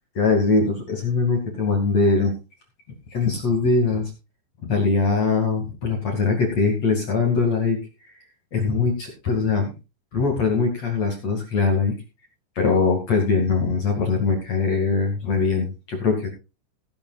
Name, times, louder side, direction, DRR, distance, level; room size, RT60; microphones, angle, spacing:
voice 1, 0.1-2.3 3.1-4.1 4.6-7.8 8.5-9.7 10.1-11.9 12.6-16.3, left 4 dB, 45° left, 1 dB, 2.4 m, -22 dB
18.5 x 10.5 x 2.4 m, 0.28 s
omnidirectional pair, 5.9 m